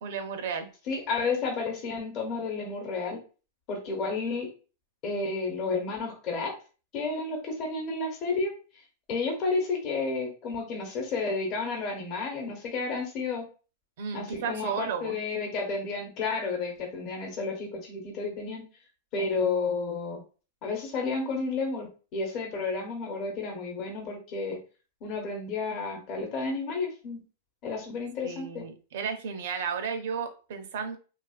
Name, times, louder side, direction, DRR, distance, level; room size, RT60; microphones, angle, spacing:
voice 1, 0.0-0.7 14.0-15.2 28.2-31.0, right 6 dB, 70° right, 7 dB, 0.5 m, -33 dB
voice 2, 0.9-3.2 3.7-4.5 5.0-6.5 6.9-8.5 9.1-13.4 14.1-18.6 19.1-20.2 20.6-24.6 25.0-27.2 27.6-28.6, left 4 dB, 40° left, 1 dB, 0.9 m, -31 dB
2.8 x 2.4 x 2.4 m, 0.35 s
hypercardioid pair, 130°, 0 cm